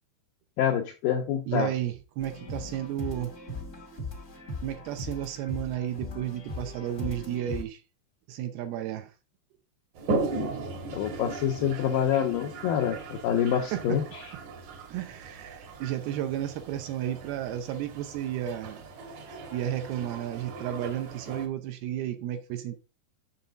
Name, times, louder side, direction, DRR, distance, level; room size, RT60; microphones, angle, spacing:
voice 1, 0.6-1.7 10.9-14.3, left 9 dB, 80° left, 2.0 m, -27 dB
voice 2, 1.5-3.3 4.6-7.8 8.3-9.1 13.7-14.0 14.9-18.8 19.5-22.8, right 11 dB, 80° right, 2.4 m, -32 dB
sound 1, 2.2-7.6, left 2 dB, 50° left, 0.8 m, -39 dB
Toilet flush, 10.0-21.5, right 3 dB, 60° right, 2.1 m, -37 dB
7.0 x 7.0 x 3.8 m
omnidirectional pair, 4.9 m